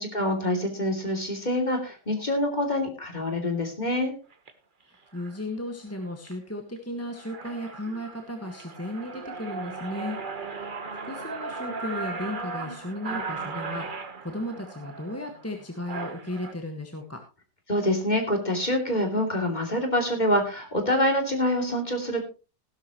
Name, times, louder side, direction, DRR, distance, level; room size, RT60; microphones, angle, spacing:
voice 1, 0.0-4.1 17.7-22.2, left 1 dB, 25° left, 4 dB, 3.0 m, -26 dB
sound 1, 4.3-4.5 5.1-5.4 5.9-6.3 6.8-6.9 7.1-16.5, right 4 dB, 30° right, 1.2 m, -37 dB
voice 2, 4.8-17.2, left 1 dB, 10° left, 3 dB, 1.5 m, -35 dB
16.5 x 12.0 x 3.0 m, 0.32 s
omnidirectional pair, 1.9 m